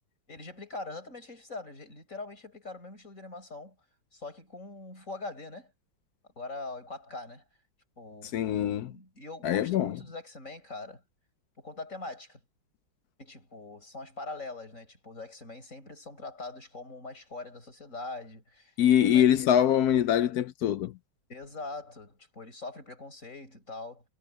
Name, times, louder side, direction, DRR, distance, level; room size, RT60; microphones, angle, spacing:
voice 1, 0.3-3.8 4.1-5.7 6.4-7.4 8.0-11.0 11.6-12.4 13.2-19.3 21.3-24.0, left 3 dB, 40° left, 7.2 m, -42 dB
voice 2, 8.3-8.9 9.4-10.0 18.8-20.9, left 10 dB, 70° left, 0.9 m, -23 dB
omnidirectional pair, 2.1 m